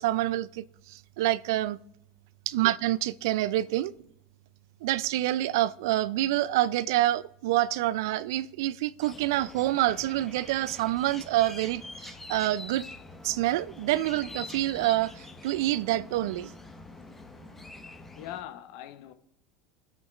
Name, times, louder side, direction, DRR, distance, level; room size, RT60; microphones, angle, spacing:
voice 1, 0.0-1.8 2.5-3.9 4.8-12.9 13.2-16.5, right 15 dB, 65° right, 0.4 m, -27 dB
sound 1, 9.0-18.4, left 2 dB, 10° left, 1.3 m, -45 dB
voice 2, 18.2-19.1, left 12 dB, 60° left, 0.8 m, -41 dB
24.0 x 8.8 x 2.4 m
hypercardioid pair, 80°, 2 cm